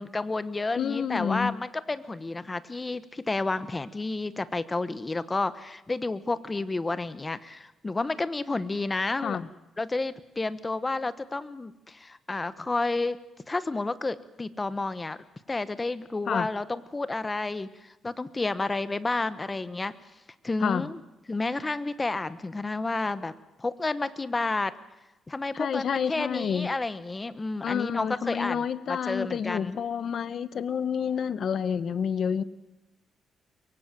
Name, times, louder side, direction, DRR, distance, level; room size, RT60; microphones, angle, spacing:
voice 1, 0.0-9.4 9.8-13.2 13.5-15.2 15.5-19.9 20.4-21.0 21.3-23.3 23.6-24.7 25.3-29.8, left 3 dB, 20° left, 15 dB, 1.2 m, -30 dB
voice 2, 0.8-1.5 9.2-9.5 16.3-16.5 20.6-20.9 25.5-26.7 27.6-32.4, left 7 dB, 55° left, 15 dB, 1.2 m, -29 dB
23.5 x 22.5 x 7.6 m, 1.0 s
cardioid pair, 120°, 0 cm